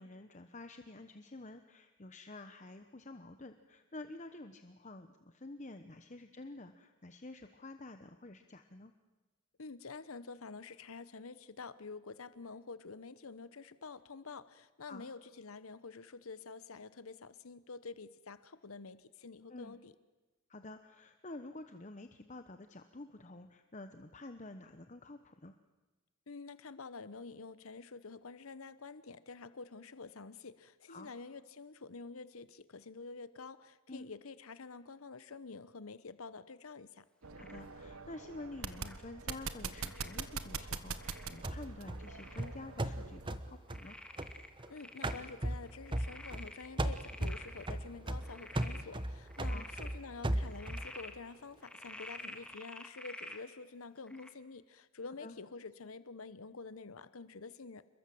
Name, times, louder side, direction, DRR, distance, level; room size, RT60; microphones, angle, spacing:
voice 1, 0.0-8.9 14.9-15.1 19.5-19.8 20.5-25.6 30.9-31.1 33.9-34.1 37.4-44.0 49.4-49.7 54.1-54.3 55.2-55.4, left 2 dB, 35° left, 8 dB, 1.0 m, -49 dB
voice 2, 9.6-19.9 26.3-37.0 44.7-57.8, left 4 dB, 80° left, 15 dB, 1.0 m, -48 dB
sound 1, 37.2-43.4, right 5 dB, 90° right, 1.5 m, -44 dB
Frog, 37.4-37.7 38.6-39.0 39.8-40.2 41.0-41.5 42.0-42.5 43.0-43.1 43.7-45.3 45.7-47.7 48.2-48.8 49.3-49.9 50.4-51.1 51.6-53.4 54.1-54.3, left 1 dB, 5° left, 1.9 m, -50 dB
sound 2, 41.4-44.7 45.0-46.5 46.8-50.9, right 1 dB, 25° right, 1.2 m, -37 dB
29.0 x 22.0 x 7.8 m, 1.2 s
head